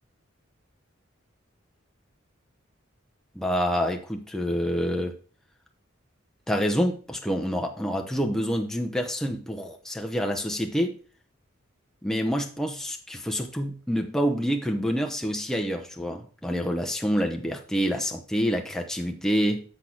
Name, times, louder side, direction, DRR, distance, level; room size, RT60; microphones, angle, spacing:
voice 1, 3.3-5.1 6.5-11.0 12.0-19.6, equal, 5° left, 2 dB, 0.8 m, -27 dB
8.2 x 3.7 x 6.0 m, 0.41 s
head